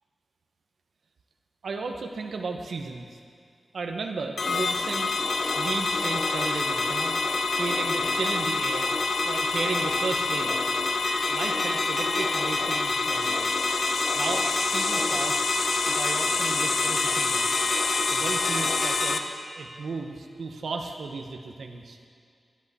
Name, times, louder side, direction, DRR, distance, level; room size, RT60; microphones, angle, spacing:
voice 1, 1.6-3.2 3.7-5.1 5.6-7.1 7.5-8.9 9.2-10.6 11.3-13.7 14.1-15.5 15.9-17.5 18.1-19.2 19.5-22.0, right 4 dB, 70° right, 3 dB, 1.0 m, -34 dB
sound 1, 4.4-19.2, left 3 dB, 55° left, 0.8 m, -26 dB
24.0 x 10.5 x 4.2 m, 2.2 s
wide cardioid pair, 155°, 0 cm